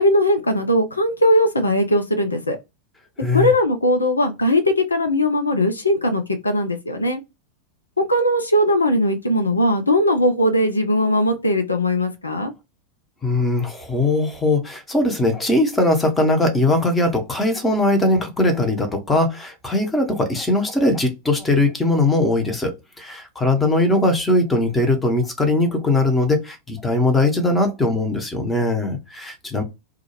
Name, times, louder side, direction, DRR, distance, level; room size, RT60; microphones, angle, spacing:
voice 1, 0.0-2.6 3.3-7.2 8.0-12.5, left 1 dB, 80° left, 0.4 m, -19 dB
voice 2, 3.2-3.5 13.2-29.6, left 2 dB, 10° left, 0.7 m, -20 dB
2.3 x 2.2 x 3.0 m
figure-of-eight pair, 90°, 0 cm